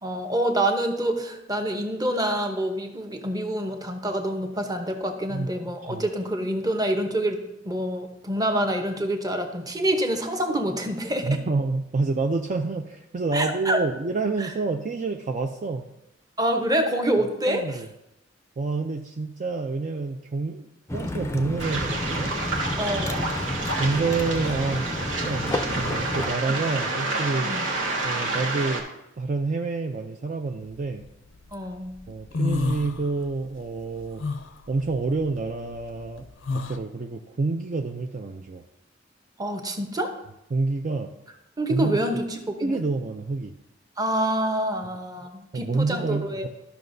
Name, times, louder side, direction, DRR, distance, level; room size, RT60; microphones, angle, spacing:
voice 1, 0.0-11.4 13.3-13.8 14.4-14.5 16.4-17.8 22.8-23.3 27.4-27.7 31.5-32.0 39.4-40.1 41.6-42.8 44.0-46.5, right 1 dB, 20° right, 5 dB, 0.9 m, -27 dB
voice 2, 11.2-15.8 17.2-17.9 18.6-22.3 23.8-27.6 28.0-28.9 29.2-31.1 32.1-34.2 34.7-38.6 40.5-41.1 41.7-42.0 42.6-43.5 45.5-46.5, right 3 dB, 40° right, 4 dB, 0.4 m, -28 dB
sound 1, 20.9-26.3, left 1 dB, 15° left, 0.5 m, -31 dB
Waves surf, 21.6-28.8, right 2 dB, 80° right, 1.4 m, -29 dB
sound 2, 30.7-31.5 31.9-33.5 33.8-36.8, left 3 dB, 90° left, 0.6 m, -30 dB
13.0 x 5.7 x 2.6 m, 0.88 s
head